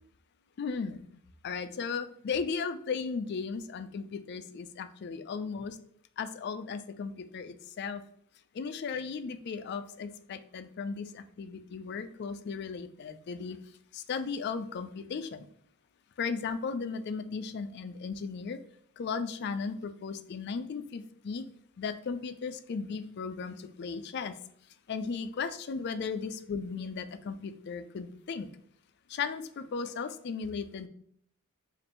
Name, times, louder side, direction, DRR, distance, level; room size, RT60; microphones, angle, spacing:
voice 1, 0.6-1.0 1.4-5.8 6.2-8.0 8.5-13.6 13.9-15.5 16.2-18.6 19.0-21.4 21.8-24.4 24.9-28.5 29.1-30.9, left 5 dB, 50° left, 10 dB, 0.3 m, -36 dB
5.2 x 2.5 x 2.9 m, 0.67 s
head